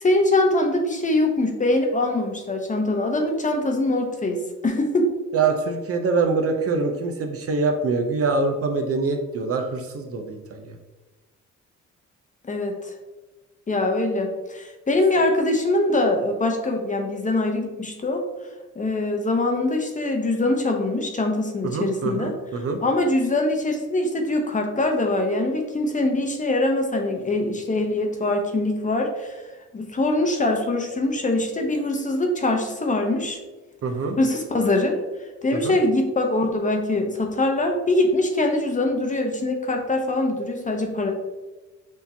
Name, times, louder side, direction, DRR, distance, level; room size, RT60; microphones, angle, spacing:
voice 1, 0.0-5.1 12.4-12.9 13.7-18.2 18.8-22.3 22.8-29.4 29.7-33.4 34.2-35.0 35.4-41.1, left 2 dB, 25° left, 3 dB, 0.8 m, -23 dB
voice 2, 5.3-10.7 21.6-22.8 33.8-34.2 35.6-35.8, right 4 dB, 50° right, 4 dB, 0.6 m, -24 dB
6.3 x 2.8 x 2.7 m, 1.2 s
cardioid pair, 90°, 30 cm